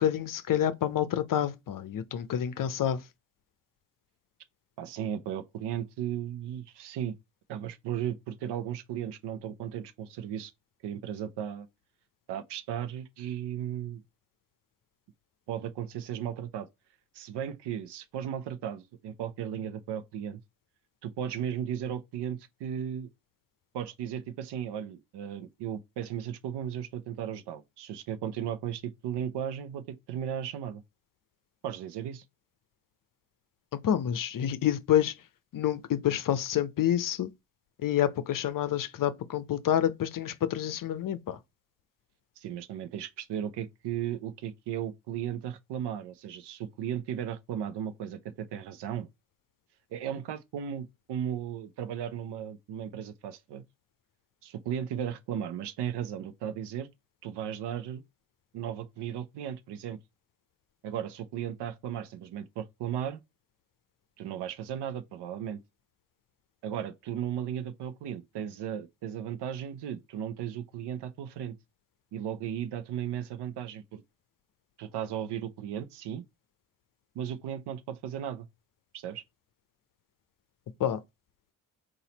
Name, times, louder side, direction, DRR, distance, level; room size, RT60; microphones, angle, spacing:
voice 1, 0.0-3.1 33.7-35.2 35.5-37.3 37.8-41.4 80.8-81.0, left 10 dB, 45° left, 0.7 m, -28 dB
voice 2, 4.8-7.2 7.5-10.5 10.8-11.7 12.3-14.0 15.5-16.7 17.1-20.4 21.0-23.1 23.7-30.8 31.6-32.2 42.4-49.1 49.9-53.6 54.4-56.9 57.2-58.0 58.5-60.0 60.8-63.2 64.2-65.6 66.6-71.6 72.1-74.0 74.8-76.2 77.1-78.5 78.9-79.2, right 9 dB, 60° right, 0.7 m, -36 dB
4.1 x 2.6 x 4.0 m
hypercardioid pair, 50°, 45 cm